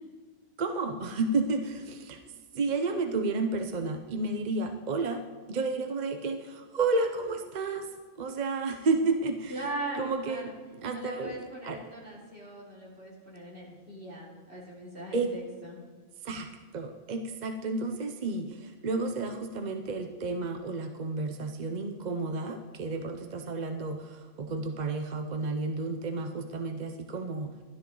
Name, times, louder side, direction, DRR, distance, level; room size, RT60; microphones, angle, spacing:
voice 1, 0.6-2.2 2.5-5.2 5.5-7.9 8.2-9.7 9.9-11.4 11.6-11.8 15.1-15.3 16.2-27.6, right 3 dB, 45° right, 6 dB, 0.7 m, -31 dB
voice 2, 9.5-10.6 10.9-15.8, right 2 dB, 60° right, -6 dB, 3.7 m, -40 dB
12.5 x 12.0 x 3.9 m, 1.4 s
omnidirectional pair, 1.2 m